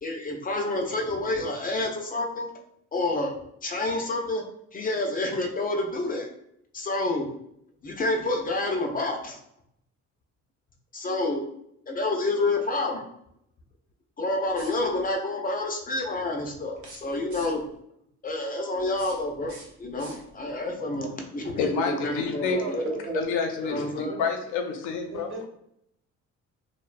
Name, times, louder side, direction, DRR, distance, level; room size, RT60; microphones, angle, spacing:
voice 1, 0.0-2.5 2.9-3.3 3.6-4.4 4.7-6.3 6.7-7.3 7.8-9.4 10.9-11.4 11.9-13.0 14.2-17.6 18.2-22.9 23.6-24.2, left 2 dB, 30° left, 2 dB, 0.5 m, -28 dB
sound 1, 14.5-15.1 16.7-17.8 18.7-20.6, right 3 dB, 75° right, 0.7 m, -49 dB
voice 2, 21.6-22.6 23.1-25.3, left 5 dB, 85° left, 3 dB, 0.5 m, -28 dB
voice 3, 22.6-23.2 24.1-24.2 25.1-25.5, right 2 dB, 40° right, -1 dB, 0.8 m, -33 dB
2.5 x 2.1 x 2.4 m, 0.74 s
cardioid pair, 90°, 30 cm